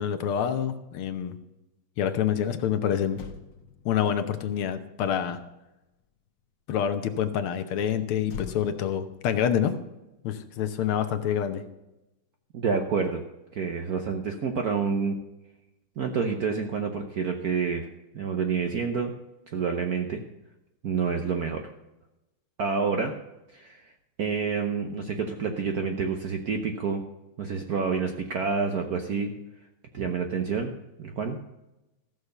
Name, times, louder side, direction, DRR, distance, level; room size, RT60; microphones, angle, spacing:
voice 1, 0.0-1.3 2.0-3.2 3.8-5.4 6.7-9.8 10.2-11.6, left 9 dB, 75° left, 9 dB, 1.8 m, -27 dB
Motor vehicle (road), 3.1-6.6 8.2-10.8 11.1-11.4, left 6 dB, 60° left, 1.6 m, -46 dB
voice 2, 12.5-13.2 13.5-15.2 16.0-17.9 18.1-19.1 19.5-20.2 20.8-21.6 22.6-23.1 23.5-23.9 24.2-27.0 27.4-29.3 29.9-30.7 31.0-31.4, right 5 dB, 55° right, 4 dB, 1.1 m, -28 dB
14.5 x 6.6 x 6.6 m, 0.96 s
omnidirectional pair, 2.4 m